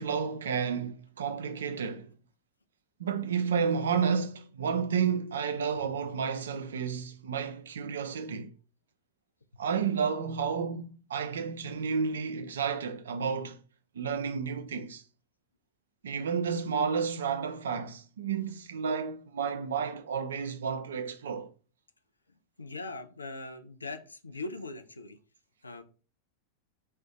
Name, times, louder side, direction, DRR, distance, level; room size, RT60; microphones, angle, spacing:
voice 1, 0.0-2.1 3.0-8.5 9.6-13.6 13.9-15.0 16.0-21.5, right 6 dB, 65° right, 0.4 m, -31 dB
voice 2, 22.6-25.2 25.6-25.8, left 3 dB, 80° left, 0.3 m, -40 dB
2.4 x 2.1 x 3.7 m
figure-of-eight pair, 90°, 0 cm